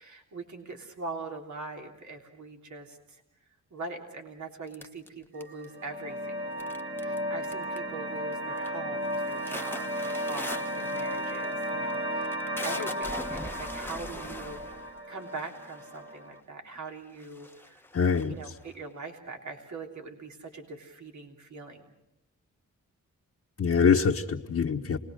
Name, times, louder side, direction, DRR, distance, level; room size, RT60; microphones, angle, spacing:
voice 1, 0.0-3.2 3.7-6.4 7.0-17.8 18.3-21.8, right 3 dB, 65° right, 2 dB, 3.4 m, -42 dB
sound 1, 4.7-5.8 6.6-7.2 7.4-7.9 8.3-8.7 9.0-16.1 16.8-16.9 17.1-18.7, left 1 dB, 5° left, 1.2 m, -42 dB
sound 2, 5.3-16.4, equal, 40° right, 2.9 m, -34 dB
voice 2, 17.9-18.3 23.6-25.0, left 6 dB, 50° left, -1 dB, 1.4 m, -24 dB
29.0 x 20.0 x 6.4 m, 0.86 s
cardioid pair, 80°, 31 cm